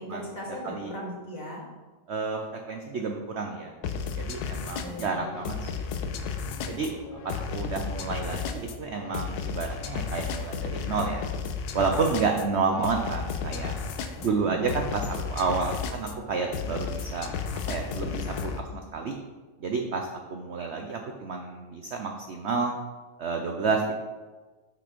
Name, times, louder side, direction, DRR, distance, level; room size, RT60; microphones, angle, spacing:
voice 1, 0.0-1.7 4.8-5.3 14.1-14.7, left 1 dB, 50° left, -4 dB, 2.5 m, -38 dB
voice 2, 2.1-2.4 2.7-3.7 4.2-5.9 6.7-7.0 7.2-11.2 11.7-13.7 14.2-17.3 17.7-19.2 19.6-22.7 23.2-24.0, right 4 dB, 65° right, 3 dB, 0.6 m, -30 dB
sound 1, 3.8-18.6, left 6 dB, 70° left, 1.1 m, -33 dB
6.3 x 6.0 x 5.1 m, 1.3 s
omnidirectional pair, 1.9 m